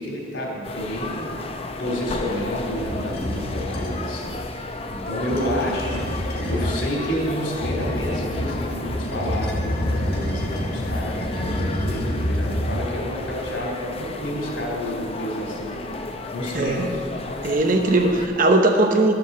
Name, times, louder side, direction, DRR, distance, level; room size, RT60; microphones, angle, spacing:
voice 1, 0.0-1.4 1.8-4.4 4.9-6.0 6.5-15.9 16.3-17.0, equal, 90° left, -2 dB, 3.1 m, -29 dB
sound 1, 0.6-18.3, left 2 dB, 35° left, 0.7 m, -34 dB
sound 2, 2.7-4.0 5.2-6.8 7.6-13.1, equal, 55° left, 1.8 m, -28 dB
voice 2, 16.5-16.9 17.4-19.1, right 2 dB, 50° right, 4 dB, 0.9 m, -19 dB
12.5 x 7.0 x 7.3 m, 2.4 s
head